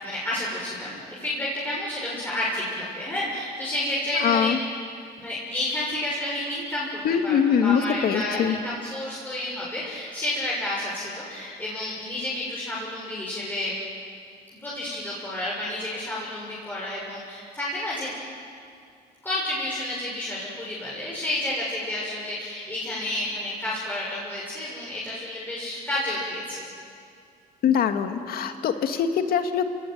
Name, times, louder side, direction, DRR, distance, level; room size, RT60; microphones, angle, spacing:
voice 1, 0.0-4.6 5.2-13.7 14.6-18.1 19.2-26.6, left 1 dB, 10° left, -6 dB, 6.9 m, -30 dB
voice 2, 4.2-4.6 7.0-8.6 27.6-29.6, left 7 dB, 60° left, 7 dB, 2.0 m, -23 dB
29.0 x 18.5 x 9.5 m, 2.4 s
cardioid pair, 110°, 17 cm